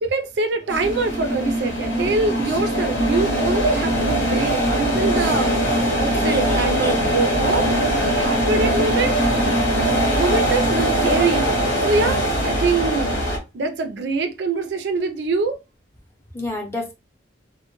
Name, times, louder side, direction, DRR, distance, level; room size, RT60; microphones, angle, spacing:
voice 1, 0.0-5.6 6.0-7.7 8.1-9.2 10.2-13.2 13.5-15.6, right 3 dB, 60° right, 0.4 m, -24 dB
sound 1, 0.7-13.4, equal, 75° left, 0.9 m, -21 dB
voice 2, 4.3-4.6 6.3-6.9 16.3-16.9, left 2 dB, 15° left, 0.6 m, -32 dB
2.1 x 2.1 x 2.9 m
head